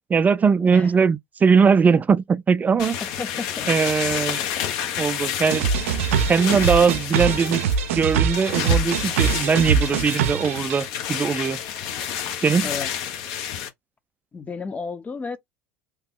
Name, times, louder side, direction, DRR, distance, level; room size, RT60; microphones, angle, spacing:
voice 1, 0.1-3.0 3.7-4.5 5.0-5.7 6.3-7.6 7.9-11.6 12.4-12.7, right 5 dB, 25° right, 0.4 m, -20 dB
voice 2, 0.6-0.9 3.0-3.7 12.6-12.9 14.3-15.4, left 4 dB, 20° left, 0.7 m, -32 dB
sound 1, 2.8-13.7, left 9 dB, 65° left, 1.0 m, -30 dB
sound 2, 5.5-10.8, right 7 dB, 90° right, 0.5 m, -23 dB
3.0 x 2.2 x 3.7 m
supercardioid pair, 100°, 7 cm